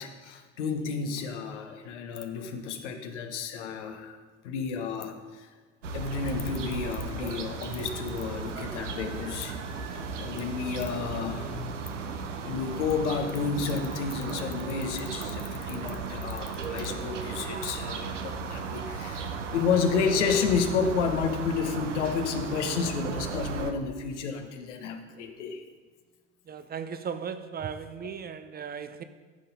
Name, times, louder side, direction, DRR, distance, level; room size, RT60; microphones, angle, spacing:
voice 1, 0.0-4.2 4.4-5.5 5.9-25.6, left 5 dB, 70° left, 6 dB, 1.1 m, -31 dB
sound 1, 5.8-23.7, right 5 dB, 80° right, 0.8 m, -36 dB
voice 2, 26.5-29.0, right 7 dB, 25° right, 10 dB, 0.6 m, -36 dB
14.0 x 5.6 x 5.3 m, 1.4 s
figure-of-eight pair, 60°, 37 cm